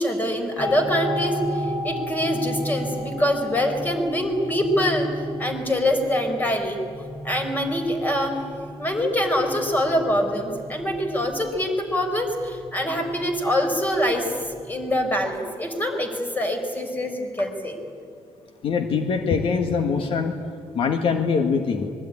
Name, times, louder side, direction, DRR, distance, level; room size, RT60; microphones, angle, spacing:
voice 1, 0.0-5.1 5.4-6.8 7.2-8.4 8.8-14.3 14.7-17.8, left 1 dB, 15° left, 5 dB, 4.3 m, -24 dB
sound 1, 0.6-15.3, equal, 40° left, 5.8 m, -34 dB
voice 2, 18.6-20.4 20.7-21.9, left 5 dB, 60° left, 6 dB, 1.7 m, -23 dB
26.0 x 22.0 x 10.0 m, 2.2 s
cardioid pair, 150°, 10 cm